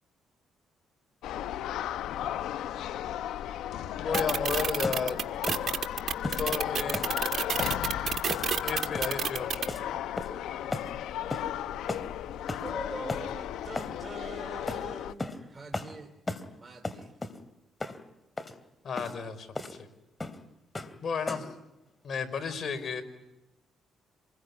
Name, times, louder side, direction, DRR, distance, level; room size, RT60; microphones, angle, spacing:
sound 1, 1.2-15.1, left 11 dB, 85° left, 0.9 m, -35 dB
voice 1, 4.0-5.2 6.4-7.0 8.6-9.6 18.8-19.5 21.0-21.5 22.0-23.0, left 6 dB, 55° left, 10 dB, 4.9 m, -32 dB
sound 2, 4.1-4.4 4.8-5.0 5.5-5.7 6.2-6.4 6.9-7.1 7.6-7.8 8.3-8.6 8.9-9.2 9.7-9.9 10.2-10.4 10.7-10.9 11.3-11.5 11.9-12.1 12.5-12.7 13.1-13.3 13.8-13.9 14.7-14.8 15.2-15.4 15.7-15.9 16.3-16.5 16.8-17.4 17.8-18.0 18.4-18.5 19.0-19.1 19.6-19.8 20.2-20.4 20.8-21.0 21.3-21.6, left 2 dB, 20° left, 2.9 m, -35 dB
sound 3, 4.1-9.7, right 8 dB, 55° right, 1.6 m, -29 dB
voice 2, 12.6-16.1 16.5-17.2, right 3 dB, 25° right, 5 dB, 3.0 m, -44 dB
27.0 x 21.0 x 9.7 m, 0.94 s
cardioid pair, 90°, 0 cm